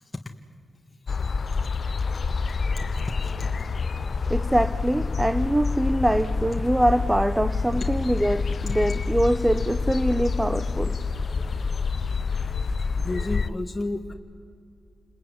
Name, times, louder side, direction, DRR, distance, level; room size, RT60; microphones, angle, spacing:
sound 1, 1.1-13.5, left 4 dB, 65° left, 0.9 m, -27 dB
voice 1, 2.8-3.5 8.7-8.8 13.0-14.1, left 2 dB, 30° left, 1.8 m, -33 dB
voice 2, 3.9-11.0 11.4-11.6, right 1 dB, 15° right, 1.0 m, -24 dB
29.0 x 20.5 x 9.8 m
cardioid pair, 50°, 0 cm